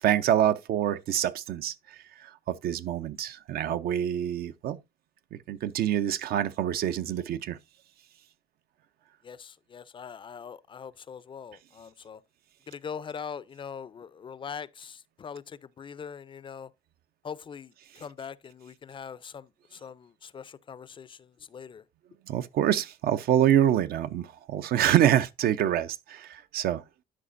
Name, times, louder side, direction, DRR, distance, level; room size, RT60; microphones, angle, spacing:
voice 1, 0.0-4.8 5.3-7.6 22.3-26.8, right 11 dB, 65° right, 0.5 m, -26 dB
voice 2, 9.2-12.2 12.7-16.7 17.2-21.8, left 6 dB, 30° left, 0.4 m, -42 dB
12.5 x 5.0 x 2.5 m
cardioid pair, 110°, 17 cm